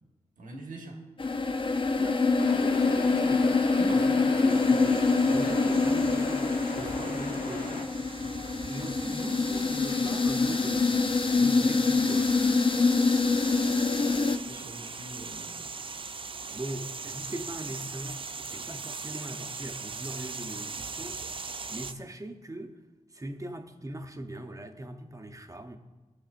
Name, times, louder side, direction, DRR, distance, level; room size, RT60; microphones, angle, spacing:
voice 1, 0.4-1.0 3.8-4.5 13.8-15.7, right 1 dB, 85° right, 1.4 m, -44 dB
sound 1, 1.2-14.4, left 4 dB, 40° left, 0.6 m, -25 dB
voice 2, 2.0-3.6 3.9-7.9 8.7-12.6 16.5-21.3 21.7-22.8 23.1-25.8, right 1 dB, 25° right, 0.9 m, -40 dB
sound 2, 2.4-7.8, left 3 dB, 85° left, 0.8 m, -39 dB
sound 3, 4.5-21.9, right 4 dB, 40° right, 0.5 m, -40 dB
16.5 x 6.1 x 2.6 m
cardioid pair, 45°, 13 cm